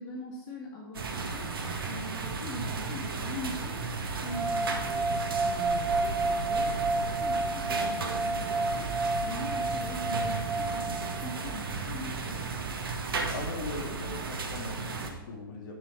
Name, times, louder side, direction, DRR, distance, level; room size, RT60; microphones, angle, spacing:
voice 1, 0.0-1.6 1.8-3.8 4.2-8.9 9.2-12.4, left 2 dB, 35° left, -2 dB, 1.9 m, -42 dB
sound 1, 0.9-15.1, right 4 dB, 70° right, 1.7 m, -34 dB
sound 2, 4.3-11.4, right 2 dB, 15° right, 0.3 m, -31 dB
voice 2, 13.3-15.7, left 3 dB, 55° left, 1 dB, 2.6 m, -40 dB
10.5 x 7.1 x 4.6 m, 1.1 s
hypercardioid pair, 115°, 12 cm